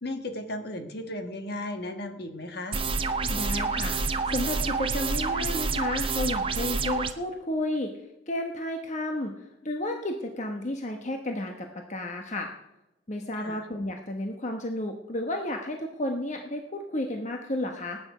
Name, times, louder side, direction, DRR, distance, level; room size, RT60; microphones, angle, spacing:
voice 1, 0.0-2.8 13.4-13.6, left 1 dB, 55° left, 6 dB, 1.5 m, -35 dB
sound 1, 2.7-7.1, right 4 dB, 30° right, 0.8 m, -28 dB
voice 2, 3.3-8.0 8.3-12.5 13.1-18.0, left 1 dB, 40° left, 4 dB, 1.1 m, -32 dB
19.0 x 8.9 x 5.0 m, 0.94 s
head